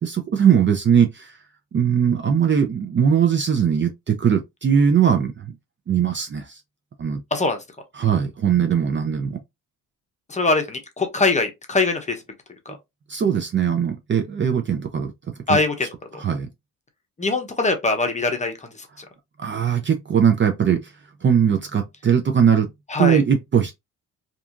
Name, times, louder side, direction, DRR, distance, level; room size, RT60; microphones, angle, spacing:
voice 1, 0.0-1.3 1.7-5.5 5.9-6.6 7.0-7.2 8.0-9.4 13.1-15.6 16.2-16.5 19.4-20.9 21.2-22.7 23.0-23.7, right 7 dB, 35° right, 0.5 m, -20 dB
voice 2, 10.3-12.2 12.7-12.8 15.5-16.2 17.2-19.0 22.9-23.2, left 3 dB, 20° left, 0.8 m, -23 dB
2.7 x 2.4 x 2.4 m
cardioid pair, 80°, 35 cm